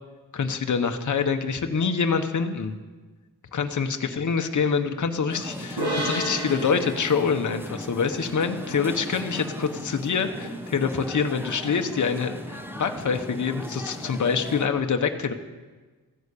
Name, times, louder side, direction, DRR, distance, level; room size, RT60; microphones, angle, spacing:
voice 1, 0.3-2.8 3.5-15.3, left 6 dB, 50° left, 6 dB, 1.1 m, -26 dB
sound 1, 5.3-14.7, equal, 5° right, 1.0 m, -37 dB
sound 2, 5.8-9.2, right 1 dB, 80° right, 6.7 m, -33 dB
15.0 x 10.0 x 8.4 m, 1.3 s
wide cardioid pair, 170°, 38 cm